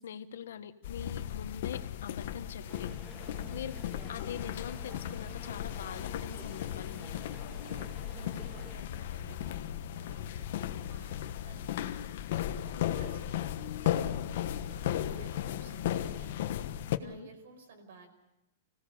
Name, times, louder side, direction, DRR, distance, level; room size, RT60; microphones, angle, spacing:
voice 1, 0.0-2.9 3.5-3.7 4.1-7.2 12.8-13.0 14.0-14.2 17.0-17.3, left 8 dB, 80° left, 10 dB, 1.5 m, -43 dB
sound 1, 0.8-17.0, left 11 dB, 45° left, 1.2 m, -36 dB
sound 2, 2.7-8.8, equal, 5° right, 1.5 m, -51 dB
voice 2, 3.2-3.6 7.4-12.0 13.0-13.4 13.8-14.4 14.7-16.3 17.0-18.1, right 4 dB, 60° right, 7 dB, 5.1 m, -54 dB
26.5 x 17.0 x 7.0 m, 0.94 s
supercardioid pair, 180°, 0 cm